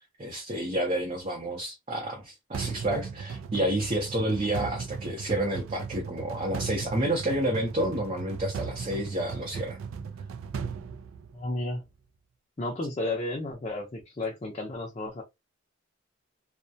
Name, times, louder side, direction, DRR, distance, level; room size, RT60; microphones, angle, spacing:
voice 1, 0.2-9.8, right 1 dB, 35° right, 0.6 m, -30 dB
sound 1, 2.5-11.7, right 5 dB, 85° right, 0.3 m, -37 dB
voice 2, 11.3-11.8 12.6-15.2, left 2 dB, 30° left, 0.5 m, -32 dB
2.2 x 2.1 x 2.6 m
head